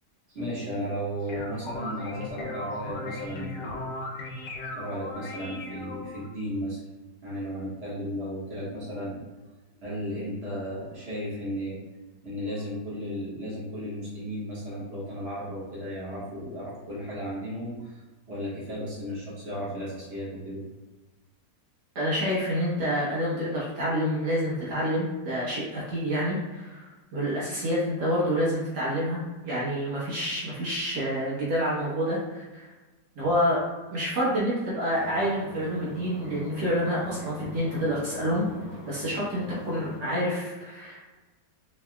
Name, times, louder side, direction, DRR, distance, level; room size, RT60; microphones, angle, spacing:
voice 1, 0.3-3.9 4.7-6.8 7.2-9.2 9.8-11.8 12.2-18.0 18.3-20.7, equal, 35° right, -9 dB, 1.7 m, -34 dB
sound 1, 1.0-6.3, left 2 dB, 80° left, 1.3 m, -37 dB
voice 2, 22.0-32.7 33.2-33.6 33.9-38.5 38.9-41.0, equal, 65° right, -8 dB, 1.7 m, -28 dB
sound 2, 34.9-40.0, left 2 dB, 20° left, 1.4 m, -42 dB
4.9 x 3.5 x 2.3 m, 1.2 s
omnidirectional pair, 1.9 m